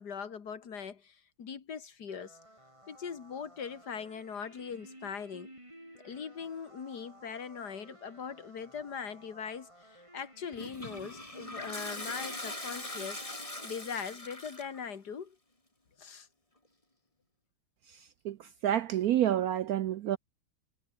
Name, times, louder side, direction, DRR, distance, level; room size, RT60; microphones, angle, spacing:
voice 1, 0.0-2.4 2.9-5.5 6.0-13.2 13.6-15.4 16.0-16.3, left 6 dB, 50° left, 2.4 m, -41 dB
sound 1, 2.1-14.0, right 1 dB, 15° right, 7.3 m, -55 dB
Toilet flush, 10.5-14.8, left 1 dB, 15° left, 3.9 m, -41 dB
voice 2, 18.2-20.2, right 11 dB, 80° right, 0.8 m, -29 dB
omnidirectional pair, 2.2 m